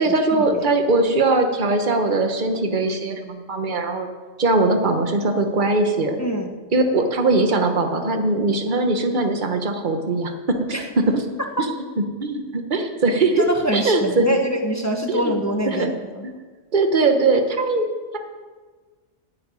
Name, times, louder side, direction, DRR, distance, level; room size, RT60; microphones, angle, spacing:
voice 1, 0.0-4.1 4.4-6.2 6.7-13.4 13.7-14.3 15.1-15.3 15.6-15.9 16.2-16.4 16.7-17.8, right 2 dB, 40° right, 5 dB, 1.3 m, -21 dB
voice 2, 6.2-6.6 10.7-10.8 13.4-16.3, equal, 15° left, 3 dB, 1.0 m, -24 dB
9.7 x 9.6 x 9.1 m, 1.4 s
omnidirectional pair, 1.4 m